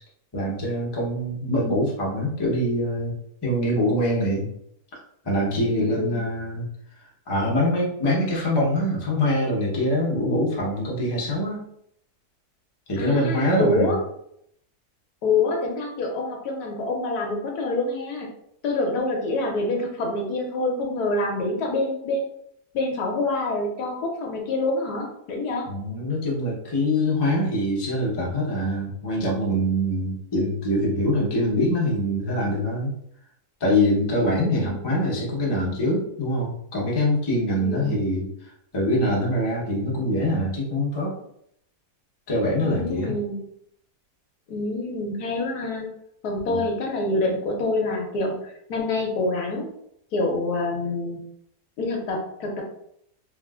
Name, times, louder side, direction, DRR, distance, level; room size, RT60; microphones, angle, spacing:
voice 1, 0.3-3.2 3.4-4.5 5.2-6.7 7.0-11.6 12.9-14.0 25.7-32.9 33.6-41.1 42.3-43.1 46.5-46.6, left 1 dB, 25° left, -5 dB, 0.6 m, -24 dB
voice 2, 5.7-6.2 13.0-14.0 15.2-18.3 18.6-22.3 22.7-25.7 34.2-35.0 37.6-38.1 42.6-43.4 44.5-45.9 46.2-49.7 50.1-51.2 51.8-52.6, left 2 dB, 75° left, 1 dB, 1.2 m, -26 dB
3.6 x 2.5 x 2.4 m, 0.73 s
omnidirectional pair, 1.8 m